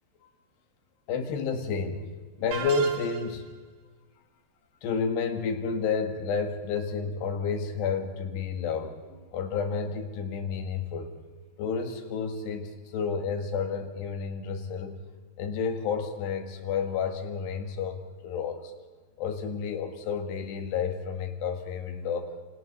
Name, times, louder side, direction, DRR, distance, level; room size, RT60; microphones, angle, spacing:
voice 1, 1.1-2.0 2.4-3.5 4.8-11.1 11.6-14.9 15.4-18.7 19.2-22.3, left 5 dB, 75° left, 6 dB, 3.9 m, -30 dB
sound 1, 2.5-3.5, right 7 dB, 40° right, 2.1 m, -36 dB
27.5 x 26.0 x 4.1 m, 1.3 s
omnidirectional pair, 4.9 m